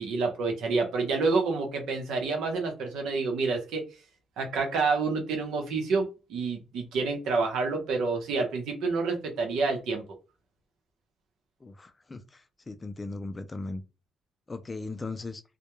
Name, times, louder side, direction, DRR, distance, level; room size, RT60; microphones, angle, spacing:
voice 1, 0.0-3.8 4.4-10.0, right 4 dB, 85° right, 0.7 m, -28 dB
voice 2, 11.6-12.2 12.7-13.8 14.5-15.4, left 3 dB, 25° left, 0.3 m, -37 dB
2.2 x 2.1 x 2.9 m
cardioid pair, 90°, 0 cm